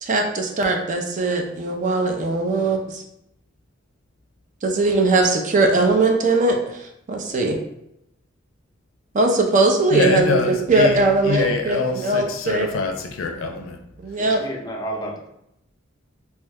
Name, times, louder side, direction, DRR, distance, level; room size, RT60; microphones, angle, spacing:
voice 1, 0.0-3.0 4.6-7.6 9.1-10.4 10.7-12.7 14.0-14.4, right 2 dB, 40° right, 3 dB, 0.4 m, -20 dB
voice 2, 9.9-13.8, left 3 dB, 75° left, 5 dB, 0.4 m, -24 dB
voice 3, 14.2-15.3, right 1 dB, 20° left, 0 dB, 0.4 m, -31 dB
2.7 x 2.1 x 3.4 m, 0.79 s
head